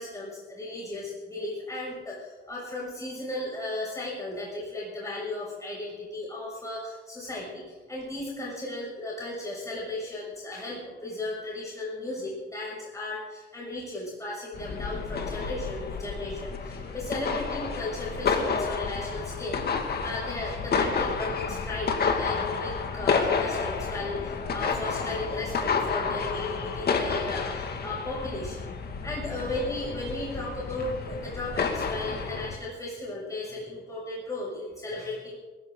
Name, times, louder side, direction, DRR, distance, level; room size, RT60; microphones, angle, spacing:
voice 1, 0.0-35.4, left 2 dB, 15° left, -5 dB, 6.6 m, -35 dB
sound 1, 14.5-32.6, left 5 dB, 55° left, 2.1 m, -30 dB
22.0 x 14.5 x 3.9 m, 1.3 s
cardioid pair, 90°, 20 cm